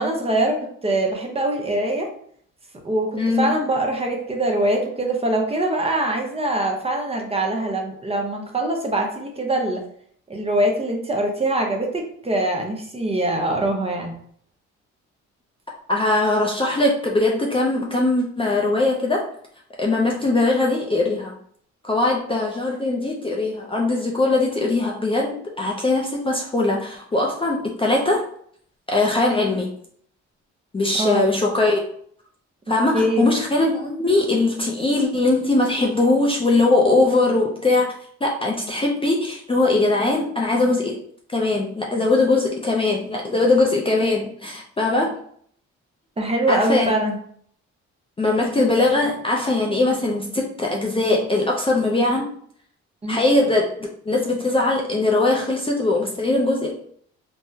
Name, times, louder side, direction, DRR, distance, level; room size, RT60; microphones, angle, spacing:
voice 1, 0.0-2.1 2.8-9.8 10.3-14.1 31.0-31.3 32.9-33.3 46.2-47.2 53.0-53.2, right 1 dB, 20° right, 1 dB, 0.7 m, -23 dB
voice 2, 3.2-3.5 15.9-19.2 19.8-21.4 21.8-28.2 28.9-29.7 30.7-31.8 32.7-37.9 38.2-41.0 41.3-45.1 46.5-46.9 48.2-52.3 53.1-56.7, left 2 dB, 20° left, -2 dB, 0.5 m, -21 dB
3.5 x 2.1 x 2.7 m, 0.62 s
cardioid pair, 90°, 30 cm